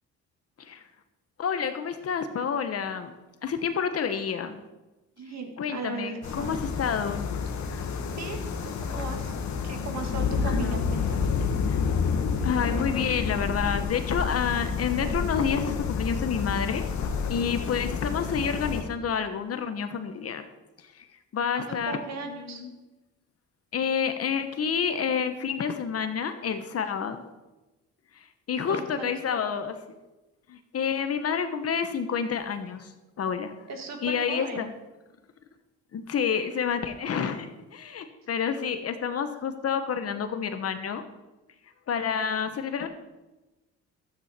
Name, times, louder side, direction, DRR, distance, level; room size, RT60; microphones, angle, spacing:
voice 1, 1.4-3.1 3.4-4.6 5.6-7.3 7.7-7.9 10.5-10.8 11.7-11.8 12.4-16.9 17.3-20.5 20.8-21.1 21.3-22.0 22.2-22.7 23.7-27.2 28.1-29.8 30.5-33.5 34.0-34.7 35.9-41.0 41.9-42.9, left 7 dB, 50° left, 9 dB, 1.1 m, -29 dB
voice 2, 5.2-6.6 8.1-9.4 9.6-11.3 21.7-22.6 28.7-29.1 33.7-34.7, right 4 dB, 60° right, 4 dB, 2.1 m, -37 dB
sound 1, 6.2-18.8, left 5 dB, 65° left, 1.4 m, -29 dB
12.5 x 8.6 x 4.4 m, 1.1 s
cardioid pair, 90°, 30 cm